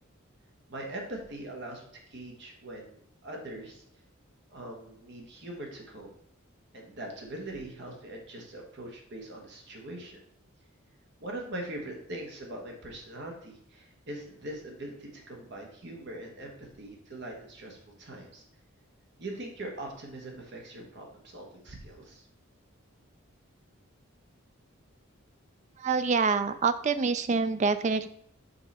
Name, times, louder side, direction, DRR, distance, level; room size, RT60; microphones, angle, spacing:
voice 1, 0.7-3.8 4.5-6.1 6.7-10.2 11.2-18.4 19.2-22.3, right 1 dB, 55° right, 0 dB, 1.4 m, -42 dB
voice 2, 25.8-28.1, right 4 dB, 35° right, 12 dB, 0.4 m, -26 dB
5.5 x 4.9 x 4.2 m, 0.67 s
head